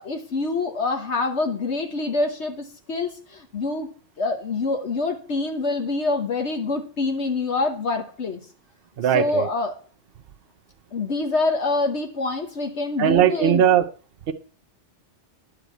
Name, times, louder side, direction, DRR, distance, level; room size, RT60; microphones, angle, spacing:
voice 1, 0.0-3.9 4.2-8.4 9.1-9.8 10.9-13.6, left 3 dB, 65° left, 4 dB, 1.4 m, -26 dB
voice 2, 9.0-9.5 13.0-13.9 14.3-14.4, right 10 dB, 55° right, 7 dB, 0.8 m, -19 dB
10.5 x 4.9 x 8.2 m, 0.40 s
omnidirectional pair, 1.3 m